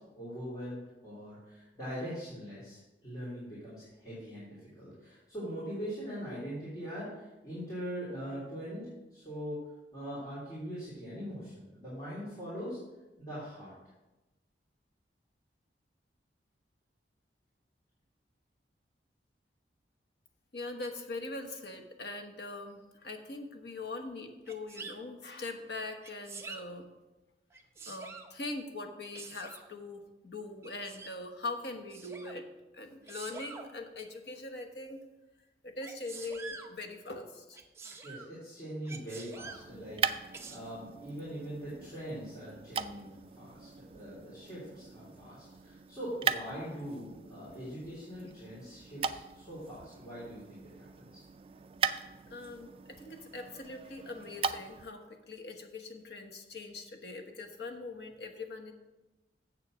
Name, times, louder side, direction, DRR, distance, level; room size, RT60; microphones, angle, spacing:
voice 1, 0.1-8.8 9.1-9.6 9.9-12.8 13.2-13.7 38.0-43.1 43.4-51.2, equal, 20° left, -11 dB, 3.0 m, -42 dB
voice 2, 20.5-26.9 27.9-32.4 32.7-35.0 35.6-37.6 52.3-58.7, left 2 dB, 70° left, 4 dB, 1.1 m, -42 dB
Sneeze, 24.5-25.0 26.0-26.6 27.5-28.3 29.1-29.7 30.6-31.2 31.9-32.4 33.0-33.7 35.8-36.7 37.5-38.3 38.8-39.6 40.3-40.6, right 4 dB, 15° right, 0.7 m, -46 dB
sound 1, 39.3-54.9, right 6 dB, 30° right, 0.3 m, -39 dB
7.6 x 6.9 x 6.2 m, 1.0 s
head